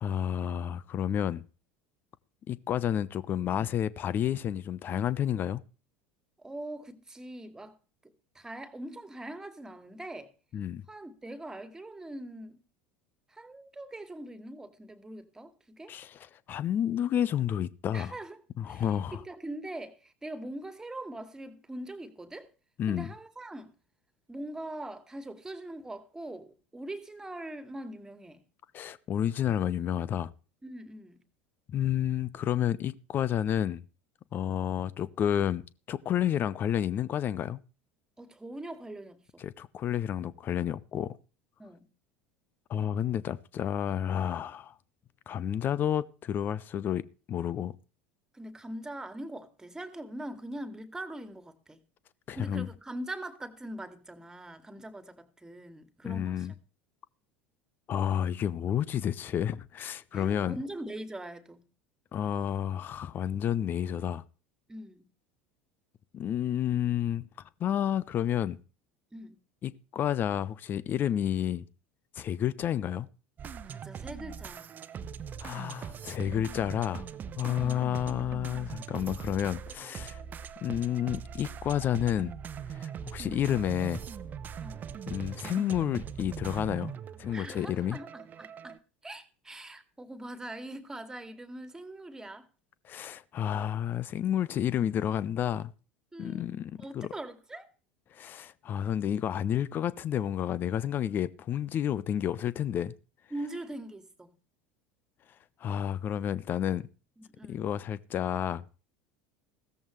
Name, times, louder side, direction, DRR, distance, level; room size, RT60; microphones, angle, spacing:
voice 1, 0.0-1.4 2.5-5.6 10.5-10.8 15.9-16.2 16.5-18.1 18.6-19.2 22.8-23.1 28.7-30.3 31.7-33.8 34.3-37.6 39.4-41.2 42.7-44.7 45.3-47.0 47.3-47.7 52.3-52.7 56.0-56.5 57.9-60.6 62.1-64.2 66.1-67.3 67.6-68.6 69.6-71.6 72.1-73.1 75.4-77.1 77.4-80.2 80.6-82.3 82.7-84.0 85.1-86.9 87.2-88.0 92.9-95.7 96.2-97.1 98.1-102.9 105.6-106.9 107.5-108.6, left 10 dB, 35° left, 0.9 m, -30 dB
voice 2, 6.4-7.8 8.0-10.3 10.9-12.6 13.3-16.0 17.9-18.4 18.7-22.5 22.9-23.7 24.3-28.4 30.6-31.2 38.2-39.4 41.6-41.9 48.3-51.8 52.3-56.5 60.1-61.7 64.7-65.1 69.1-69.4 73.6-74.7 77.5-78.0 84.6-84.9 87.3-92.5 96.1-97.7 103.3-104.3 107.2-107.6, right 1 dB, 10° right, 2.3 m, -42 dB
sound 1, 73.4-88.8, right 7 dB, 30° right, 0.9 m, -41 dB
16.5 x 14.0 x 3.2 m
figure-of-eight pair, 70°, 6 cm